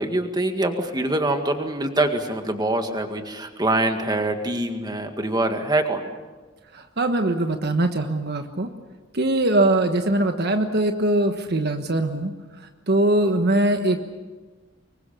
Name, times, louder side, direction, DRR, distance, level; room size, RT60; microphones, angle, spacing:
voice 1, 0.0-6.1, right 1 dB, 20° right, 5 dB, 2.0 m, -24 dB
voice 2, 6.7-8.7 9.1-12.3 12.9-14.0, right 1 dB, 55° right, 6 dB, 1.3 m, -21 dB
25.0 x 22.5 x 7.0 m, 1.3 s
head